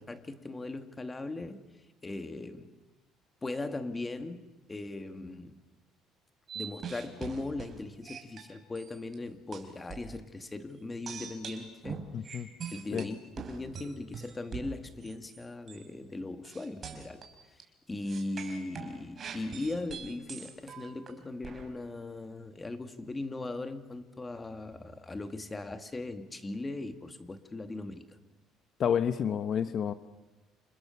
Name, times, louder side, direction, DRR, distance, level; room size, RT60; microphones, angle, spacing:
voice 1, 0.0-1.7 2.0-2.7 3.4-5.6 6.5-12.1 12.7-17.2 17.9-28.0, left 2 dB, 20° left, 8 dB, 2.3 m, -39 dB
sound 1, 6.5-9.1 9.5-10.1 11.1-15.4 15.7-15.9 16.4-17.6 18.0-21.7, right 6 dB, 40° right, 5.1 m, -43 dB
voice 2, 12.1-12.5 12.9-13.1 28.8-29.9, left 8 dB, 50° left, 11 dB, 1.1 m, -29 dB
29.0 x 28.0 x 7.3 m, 1.1 s
cardioid pair, 110°, 0 cm